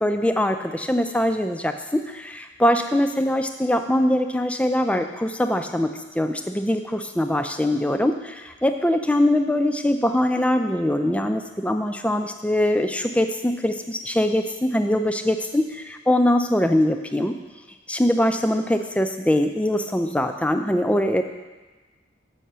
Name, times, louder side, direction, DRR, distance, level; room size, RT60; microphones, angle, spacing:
voice 1, 0.0-17.4 17.9-21.2, left 1 dB, 5° left, 7 dB, 0.4 m, -22 dB
6.8 x 5.7 x 7.4 m, 1.2 s
head